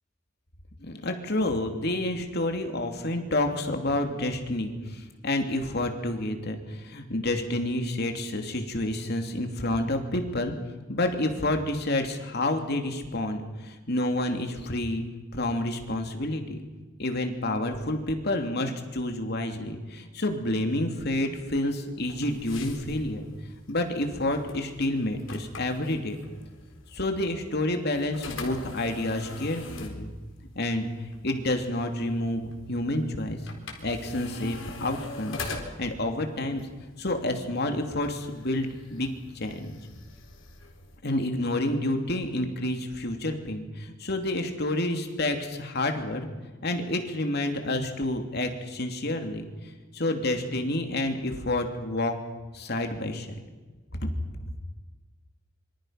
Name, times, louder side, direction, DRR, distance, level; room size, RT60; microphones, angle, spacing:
voice 1, 0.8-10.5 10.9-15.0 15.3-16.6 17.0-23.3 23.7-26.2 26.9-30.1 30.5-33.4 33.8-35.5 35.8-36.6 37.0-39.1 39.3-39.7 41.0-46.3 46.6-49.4 49.9-52.1 52.5-53.4 54.0-54.1, left 1 dB, 55° left, 5 dB, 2.9 m, -29 dB
sound 1, 22.0-41.0, left 3 dB, 85° left, 4.2 m, -44 dB
26.0 x 25.0 x 5.9 m, 1.3 s
head